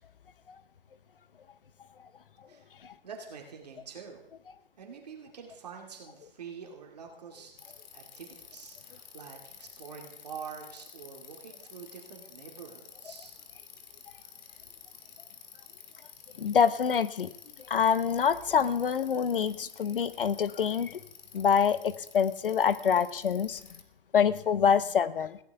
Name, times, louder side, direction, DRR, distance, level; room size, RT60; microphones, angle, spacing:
voice 1, 3.0-4.2 4.8-7.5 7.9-13.3, right 6 dB, 45° right, 1 dB, 2.3 m, -46 dB
Bicycle, 7.6-23.8, left 6 dB, 50° left, 2.0 m, -51 dB
voice 2, 16.4-17.3 17.7-21.0 21.3-23.6 24.1-25.4, left 7 dB, 65° left, 15 dB, 1.0 m, -26 dB
20.5 x 16.0 x 3.5 m, 0.76 s
hypercardioid pair, 175°, 29 cm